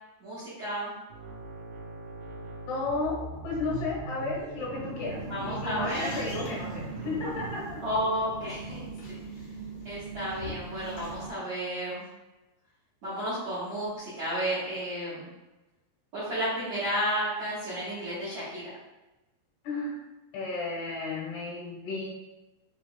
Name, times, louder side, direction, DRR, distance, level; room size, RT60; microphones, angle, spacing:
voice 1, 0.2-0.9 5.2-6.2 7.8-8.8 9.1-9.2 9.8-12.0 13.0-15.3 16.1-18.6, equal, 60° right, -10 dB, 1.6 m, -32 dB
sound 1, 1.1-8.1, right 2 dB, 85° right, 2.9 m, -40 dB
voice 2, 2.7-7.8 19.6-19.9 20.3-22.1, left 3 dB, 75° left, -3 dB, 2.8 m, -33 dB
sound 2, 4.8-11.3, right 3 dB, 60° left, 1.6 m, -41 dB
6.9 x 3.0 x 2.3 m, 1.0 s
omnidirectional pair, 5.0 m